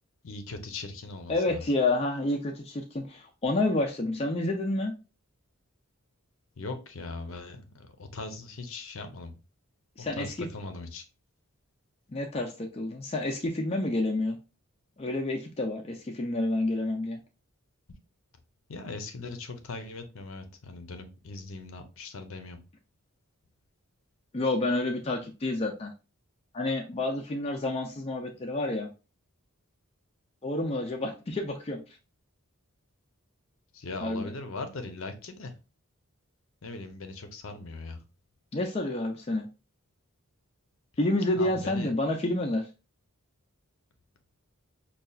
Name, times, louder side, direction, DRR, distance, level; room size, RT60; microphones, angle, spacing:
voice 1, 0.2-1.6 6.6-9.4 10.0-11.0 18.7-22.6 33.7-35.5 36.6-38.0 41.4-41.9, left 3 dB, 65° left, 0.6 m, -40 dB
voice 2, 1.3-4.9 10.0-10.5 12.1-14.4 15.0-17.2 24.3-25.9 26.5-28.9 30.4-31.8 34.0-34.2 38.5-39.4 41.0-42.7, left 2 dB, 25° left, 0.4 m, -29 dB
5.4 x 2.3 x 2.3 m
head